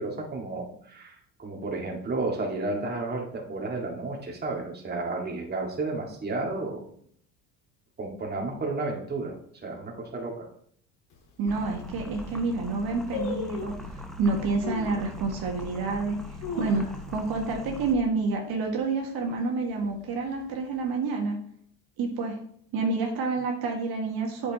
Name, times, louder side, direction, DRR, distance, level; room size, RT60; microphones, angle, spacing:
voice 1, 0.0-6.9 8.0-9.3 9.6-10.5, right 3 dB, 25° right, 0 dB, 1.9 m, -32 dB
sound 1, 11.1-11.2 11.8-11.9 12.1-12.5 13.1-13.9 14.6-15.0 15.5-15.6 16.2-17.3 17.6-17.7 18.0-18.4 18.8-19.2 19.8-20.5 20.8-20.9, left 5 dB, 85° left, 1.9 m, -36 dB
voice 2, 11.4-16.2 16.6-21.4 22.0-22.4 22.7-24.5, right 3 dB, 60° right, 1 dB, 1.6 m, -28 dB
sound 2, 11.5-18.0, left 2 dB, ahead, 0.8 m, -41 dB
8.5 x 6.6 x 2.9 m, 0.62 s
supercardioid pair, 100°, 41 cm